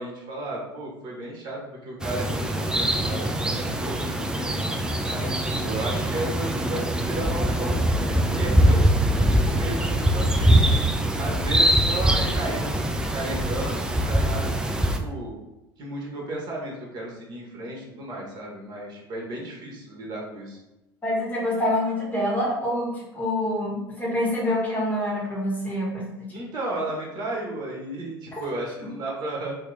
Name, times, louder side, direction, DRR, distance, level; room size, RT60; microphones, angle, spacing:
voice 1, 0.0-4.6 5.0-7.8 8.2-8.8 9.1-10.5 11.2-15.3 15.8-20.6 26.3-29.5, right 1 dB, 35° right, -2 dB, 1.2 m, -34 dB
sound 1, 2.0-15.0, right 1 dB, 5° right, 0.3 m, -23 dB
voice 2, 21.0-26.2, left 1 dB, 15° left, -5 dB, 1.4 m, -26 dB
2.9 x 2.9 x 3.8 m, 0.95 s
figure-of-eight pair, 70°, 12 cm